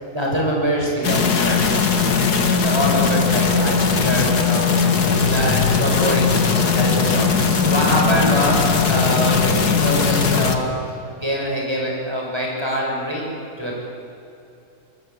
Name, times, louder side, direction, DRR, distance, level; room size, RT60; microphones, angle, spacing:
voice 1, 0.1-1.8 2.6-6.3 6.7-7.3 7.6-10.7 11.1-13.3 13.6-13.8, equal, 15° right, -3 dB, 6.7 m, -24 dB
sound 1, 1.0-10.6, left 5 dB, 90° left, 2.4 m, -18 dB
26.0 x 22.5 x 8.7 m, 2.7 s
omnidirectional pair, 1.7 m